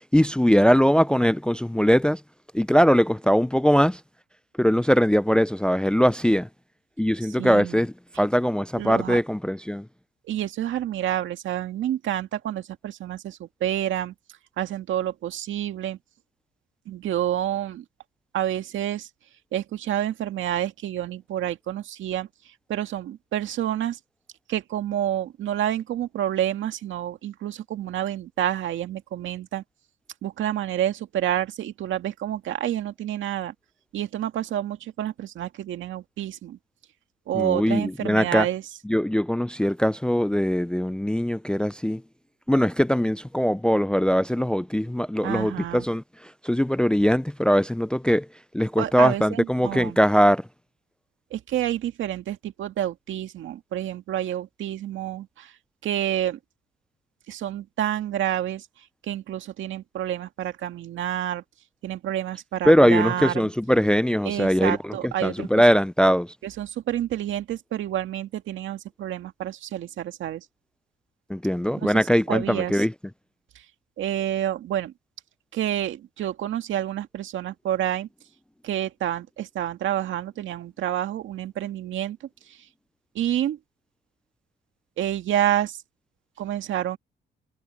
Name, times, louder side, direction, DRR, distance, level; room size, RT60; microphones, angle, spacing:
voice 1, 0.1-2.2 2.5-4.0 4.6-6.5 7.0-9.9 37.3-38.5 38.9-42.0 42.5-46.0 46.4-48.3 48.5-50.4 62.7-66.3 71.3-72.9, equal, 5° left, 0.4 m, -21 dB
voice 2, 7.2-7.8 8.8-9.2 10.3-14.1 14.6-16.0 16.9-17.8 18.3-19.1 19.5-22.3 22.7-24.0 24.5-29.6 30.2-33.5 33.9-36.6 37.3-38.6 45.2-45.9 48.8-50.0 51.3-55.5 55.8-56.4 57.3-58.7 59.0-61.4 61.8-63.5 64.2-65.5 66.4-70.5 71.8-72.8 74.0-74.9 75.5-78.1 78.6-82.2 82.5-82.6 83.2-83.6 85.0-85.8 86.4-87.0, right 11 dB, 75° right, 2.0 m, -28 dB
cardioid pair, 90°, 20 cm